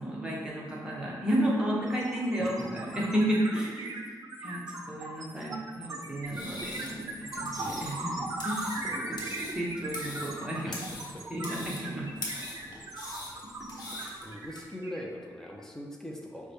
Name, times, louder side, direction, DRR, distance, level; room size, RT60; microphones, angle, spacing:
voice 1, 0.0-3.9 4.4-8.8 9.1-9.2 9.5-10.8 11.3-12.1 14.0-14.1, equal, 10° right, -5 dB, 0.9 m, -32 dB
sound 1, 0.8-1.0 1.3-15.6, right 2 dB, 50° right, 0.5 m, -39 dB
voice 2, 2.4-2.9 7.6-8.2 8.8-9.5 10.6-11.3 12.9-13.2 13.7-16.5, equal, 5° left, 0 dB, 0.6 m, -43 dB
sound 2, 6.2-14.6, left 2 dB, 70° left, 1.0 m, -42 dB
4.8 x 2.2 x 4.5 m, 1.5 s
wide cardioid pair, 115°, 7 cm